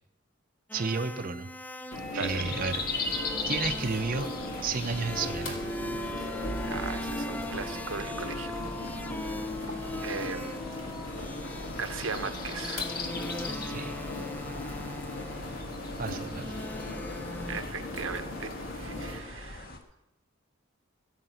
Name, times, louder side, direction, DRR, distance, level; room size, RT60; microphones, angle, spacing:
sound 1, 0.7-17.6, left 1 dB, 10° left, 0.5 m, -40 dB
voice 1, 0.7-1.5 2.1-3.1 3.5-4.3 4.6-5.6 13.7-13.9 16.0-16.6, right 4 dB, 45° right, 6 dB, 0.7 m, -32 dB
sound 2, 1.9-19.2, left 1 dB, 85° left, 2.5 m, -39 dB
voice 2, 2.1-2.4 6.7-8.9 9.2-9.5 10.0-10.6 11.8-13.0 17.5-19.7, right 5 dB, 85° right, 9 dB, 0.9 m, -38 dB
sound 3, 2.2-19.8, left 3 dB, 50° left, 1.6 m, -40 dB
15.5 x 6.6 x 7.9 m, 0.86 s
head